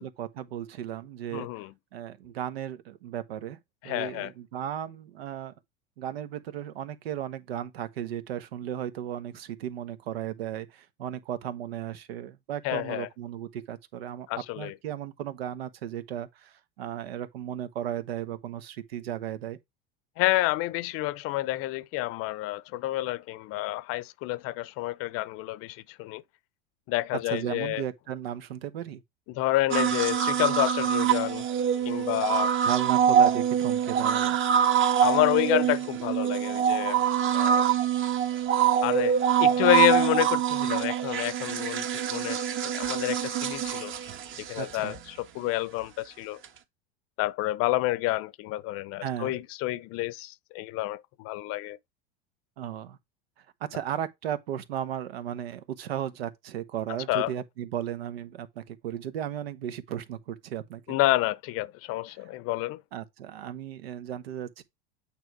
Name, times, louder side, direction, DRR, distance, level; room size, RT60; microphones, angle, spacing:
voice 1, 0.0-1.5 1.9-3.6 3.8-5.5 6.0-14.3 14.6-19.6 27.3-29.0 32.6-34.4 44.6-45.0 49.0-49.4 52.6-53.0 53.7-61.0 62.9-64.6, right 10 dB, 80° right, 1.2 m, -35 dB
voice 2, 1.3-1.7 3.8-4.3 12.6-13.1 14.3-14.7 20.2-26.2 26.9-27.8 29.3-31.4 31.8-32.6 35.0-37.0 37.3-37.7 38.8-42.4 42.7-43.9 44.5-46.4 47.2-51.8 57.1-57.3 60.9-62.8, left 17 dB, 50° left, 0.7 m, -29 dB
sound 1, 29.7-45.0 46.4-46.5, right 8 dB, 40° right, 1.4 m, -25 dB
8.9 x 3.4 x 4.7 m
hypercardioid pair, 100°, 30 cm